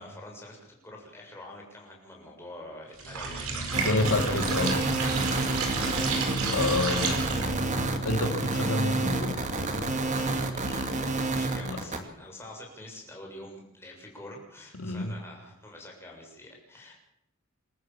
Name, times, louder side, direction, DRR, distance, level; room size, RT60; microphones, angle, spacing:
voice 1, 0.0-4.6 5.5-5.7 10.0-16.9, left 1 dB, 10° left, -1 dB, 7.1 m, -47 dB
sound 1, 3.0-7.6, right 4 dB, 85° right, 4.8 m, -31 dB
sound 2, 3.7-12.0, right 2 dB, 35° right, 2.3 m, -29 dB
voice 2, 3.8-4.8 6.5-7.2 8.0-9.4 11.6-11.8 14.8-15.1, left 2 dB, 70° left, 5 dB, 2.7 m, -28 dB
27.5 x 14.0 x 7.3 m, 0.81 s
head